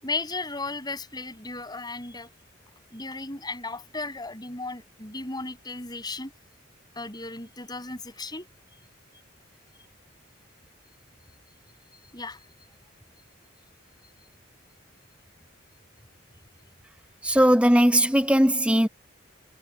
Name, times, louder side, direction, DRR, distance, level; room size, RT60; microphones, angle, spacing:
voice 1, 0.0-2.3 2.9-6.3 6.9-8.5 12.1-12.4, left 3 dB, 20° left, 7.8 m, -35 dB
voice 2, 17.2-18.9, equal, 5° right, 1.2 m, -19 dB
head